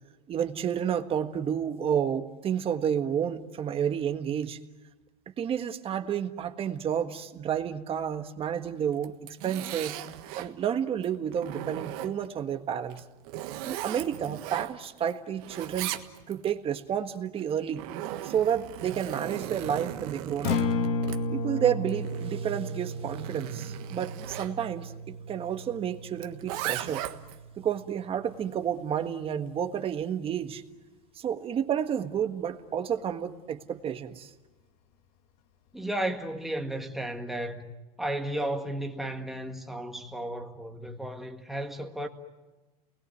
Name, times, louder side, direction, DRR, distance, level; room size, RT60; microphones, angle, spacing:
voice 1, 0.3-4.6 5.4-10.0 10.4-13.0 13.6-15.9 16.3-17.8 18.2-20.6 21.3-27.0 27.6-30.6 31.1-34.3, right 8 dB, 30° right, 1.5 m, -30 dB
Zipper (clothing), 8.9-10.5 11.0-12.4 12.9-15.1 15.4-16.5 17.4-24.5 26.2-27.4, right 13 dB, 65° right, 1.6 m, -38 dB
Acoustic guitar, 20.3-28.5, left 2 dB, 70° left, 2.1 m, -34 dB
voice 2, 35.7-37.7 38.0-42.1, right 1 dB, ahead, 1.9 m, -33 dB
29.0 x 20.5 x 9.2 m
supercardioid pair, 140°, 20 cm